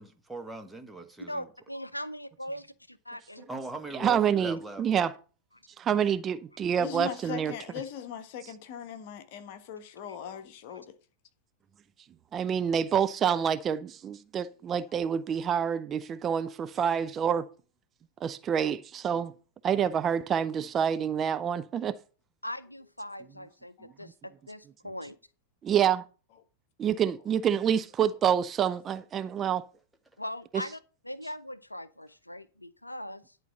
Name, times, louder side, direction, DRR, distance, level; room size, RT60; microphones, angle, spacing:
voice 1, 0.0-1.5 3.5-4.8, right 2 dB, 5° right, 1.4 m, -40 dB
voice 2, 1.3-3.4 10.7-10.8 22.4-25.2 30.2-33.4, equal, 85° left, 0.5 m, -40 dB
voice 3, 3.9-5.1 5.8-7.5 12.3-17.5 18.2-19.3 19.6-22.0 25.7-26.0 26.8-29.6, right 8 dB, 25° right, 0.4 m, -27 dB
voice 4, 6.8-11.0 23.8-23.9, left 8 dB, 50° left, 1.3 m, -40 dB
11.0 x 4.0 x 7.4 m
figure-of-eight pair, 90°, 0 cm